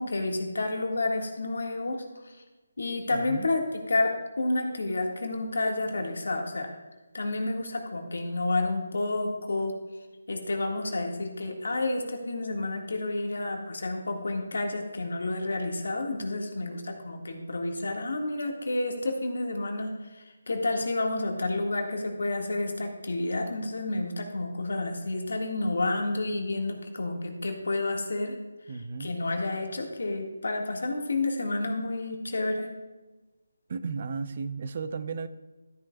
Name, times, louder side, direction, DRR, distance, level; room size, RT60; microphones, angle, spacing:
voice 1, 0.0-2.4 2.8-6.8 7.1-9.7 10.3-28.3 29.0-32.7, left 2 dB, 70° left, 3 dB, 1.7 m, -30 dB
voice 2, 3.1-3.5 28.7-29.1 33.7-35.3, right 5 dB, 40° right, 12 dB, 0.6 m, -34 dB
13.0 x 9.2 x 2.3 m, 1.2 s
figure-of-eight pair, 160°, 0 cm